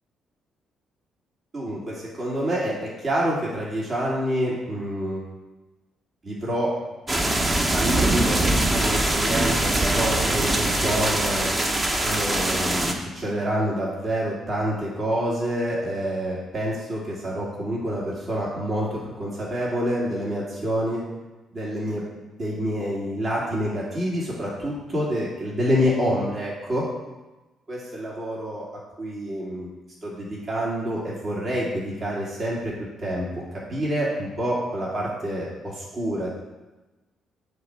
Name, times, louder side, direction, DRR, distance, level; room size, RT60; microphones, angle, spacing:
voice 1, 1.5-5.2 6.2-6.7 7.7-8.4 8.7-11.5 12.0-21.0 21.5-22.0 22.4-26.8 27.7-28.7 29.0-29.7 30.0-32.7 33.0-33.3 33.7-36.3, equal, 50° right, -5 dB, 2.6 m, -27 dB
sound 1, 7.1-12.9, right 1 dB, 30° right, 1.1 m, -22 dB
8.2 x 3.8 x 5.9 m, 1.1 s
hypercardioid pair, 50°, 0 cm